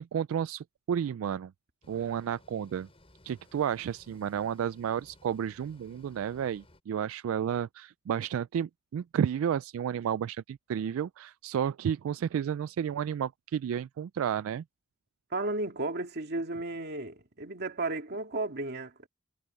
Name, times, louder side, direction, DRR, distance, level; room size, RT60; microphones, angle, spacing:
voice 1, 0.0-1.5 1.9-2.9 3.2-14.6, right 8 dB, 80° right, 0.3 m, -32 dB
sound 1, 1.8-6.8, left 1 dB, 30° left, 6.4 m, -59 dB
voice 2, 15.3-19.1, right 2 dB, 55° right, 2.4 m, -34 dB
head